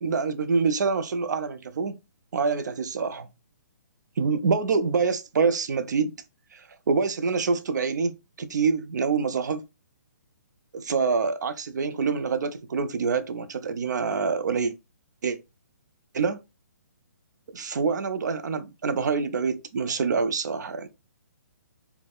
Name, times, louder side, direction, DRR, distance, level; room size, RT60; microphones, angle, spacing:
voice 1, 0.0-2.0 2.3-3.3 4.2-6.2 6.5-9.6 10.7-14.7 15.2-15.4 16.1-16.4 17.5-20.9, right 5 dB, 70° right, 0.4 m, -26 dB
3.5 x 2.0 x 2.2 m
hypercardioid pair, 165°, 10 cm